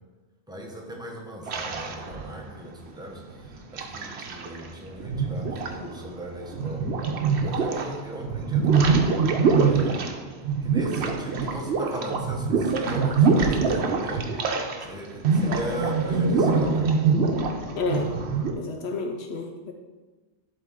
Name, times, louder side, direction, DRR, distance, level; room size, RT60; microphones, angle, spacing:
voice 1, 0.5-6.9 7.4-16.9, equal, 5° right, -1 dB, 1.0 m, -38 dB
sound 1, 1.5-2.6 3.3-4.6 5.0-7.9 8.2-14.9 15.1-18.5, right 5 dB, 85° right, 1.0 m, -24 dB
voice 2, 17.8-18.2 18.5-19.7, left 3 dB, 80° left, 3 dB, 0.9 m, -30 dB
11.5 x 3.8 x 3.6 m, 1.3 s
omnidirectional pair, 1.1 m